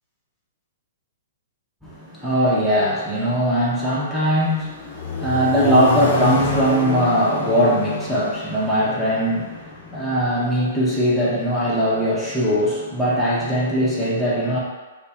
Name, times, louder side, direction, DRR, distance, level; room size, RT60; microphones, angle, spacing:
voice 1, 1.8-14.6, equal, ahead, -9 dB, 0.7 m, -20 dB
Accelerating revving vroom, 4.4-10.4, left 4 dB, 50° left, 0.5 m, -28 dB
2.5 x 2.0 x 3.4 m, 1.3 s
hypercardioid pair, 125°, 0 cm